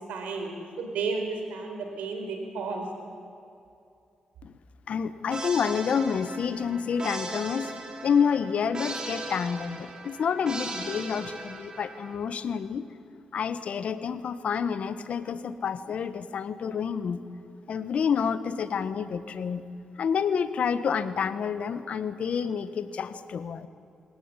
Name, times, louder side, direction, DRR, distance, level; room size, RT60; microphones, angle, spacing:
voice 1, 0.1-0.5 0.8-2.9, right 4 dB, 85° right, 4 dB, 4.4 m, -32 dB
voice 2, 4.9-12.8 13.3-17.2 17.7-19.6 20.0-23.7, left 7 dB, 70° left, 13 dB, 1.3 m, -29 dB
sound 1, 5.3-12.2, right 2 dB, 35° right, 4.8 m, -38 dB
22.0 x 18.5 x 9.9 m, 2.5 s
cardioid pair, 60°, 2 cm